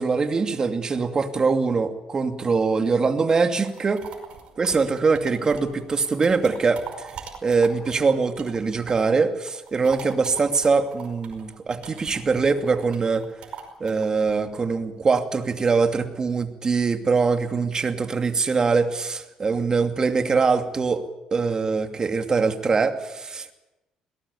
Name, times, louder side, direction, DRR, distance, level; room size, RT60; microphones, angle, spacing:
voice 1, 0.0-4.0 4.6-7.1 7.4-13.3 13.8-21.0 21.3-23.5, right 4 dB, 35° right, 7 dB, 2.5 m, -23 dB
sound 1, 3.3-9.2 9.5-15.8, right 6 dB, 60° right, 5.4 m, -42 dB
21.5 x 19.0 x 8.5 m, 1.0 s
supercardioid pair, 75°, 2 cm